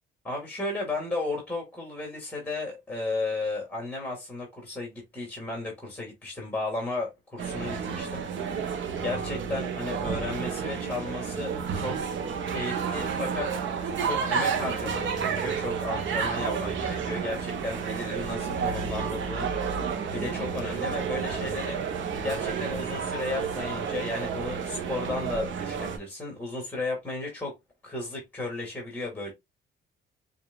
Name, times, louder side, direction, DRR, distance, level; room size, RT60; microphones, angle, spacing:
voice 1, 0.2-8.2 9.0-11.9 12.5-13.5 14.0-21.8 22.2-27.5 27.8-29.3, left 2 dB, 10° left, 2.4 m, -34 dB
sound 1, 7.4-26.0, right 6 dB, 70° right, 1.0 m, -31 dB
7.0 x 2.7 x 2.3 m
cardioid pair, 90°, 20 cm